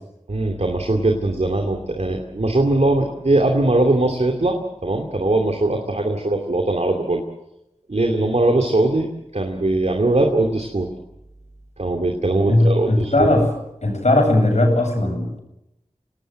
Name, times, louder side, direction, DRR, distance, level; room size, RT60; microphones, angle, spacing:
voice 1, 0.3-7.2 7.9-10.9 11.8-13.4, right 2 dB, 65° right, 3 dB, 2.7 m, -20 dB
voice 2, 12.5-13.5 13.8-15.4, left 1 dB, 70° left, 2 dB, 7.6 m, -18 dB
26.5 x 19.0 x 7.7 m, 0.86 s
wide cardioid pair, 50°, 12 cm